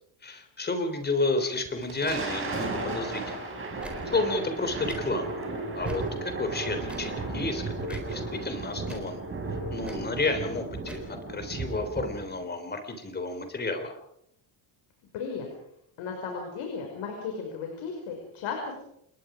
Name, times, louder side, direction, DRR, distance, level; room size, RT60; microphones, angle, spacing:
voice 1, 0.2-3.4 4.1-5.3 5.7-9.2 9.7-14.0, left 3 dB, 20° left, 7 dB, 3.5 m, -31 dB
Thunder, 1.7-12.4, right 3 dB, 25° right, 6.1 m, -34 dB
Tick / Tick-tock, 3.8-4.0 4.8-5.0 5.8-6.1 6.8-7.1 7.8-8.1 8.8-9.1 9.8-10.1 10.8-11.1, right 1 dB, ahead, 4.0 m, -45 dB
voice 2, 15.1-15.5 16.0-18.8, left 5 dB, 70° left, 2 dB, 5.7 m, -35 dB
29.0 x 21.0 x 5.0 m, 0.74 s
cardioid pair, 170°, 49 cm